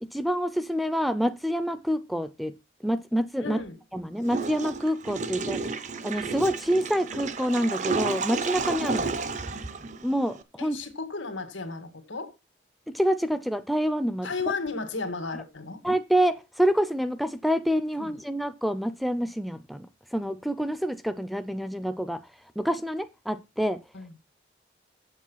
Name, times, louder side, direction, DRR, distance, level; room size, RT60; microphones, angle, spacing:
voice 1, 0.0-2.5 2.8-3.6 3.9-5.7 6.0-9.1 10.0-10.8 12.9-14.3 15.8-22.2 22.6-23.8, equal, ahead, 0.5 m, -27 dB
voice 2, 3.4-3.8 10.6-12.3 14.2-15.8 18.0-18.1 23.9-24.1, left 4 dB, 85° left, 2.0 m, -34 dB
Water / Toilet flush, 4.2-10.4, right 4 dB, 40° right, 0.7 m, -32 dB
7.9 x 7.5 x 5.6 m
head